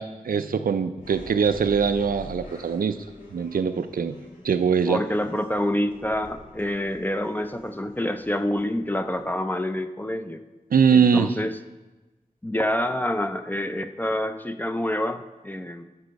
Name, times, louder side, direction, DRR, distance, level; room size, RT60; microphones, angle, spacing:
voice 1, 0.0-3.0 3.3-4.1 4.4-5.0 10.7-11.3, right 6 dB, 85° right, 10 dB, 0.5 m, -22 dB
sound 1, 1.0-9.6, left 1 dB, 75° left, 3.0 m, -47 dB
voice 2, 4.9-10.4 10.9-11.6 12.4-15.8, left 1 dB, 15° left, 8 dB, 0.5 m, -27 dB
13.0 x 5.5 x 5.2 m, 1.1 s
wide cardioid pair, 95°, 14 cm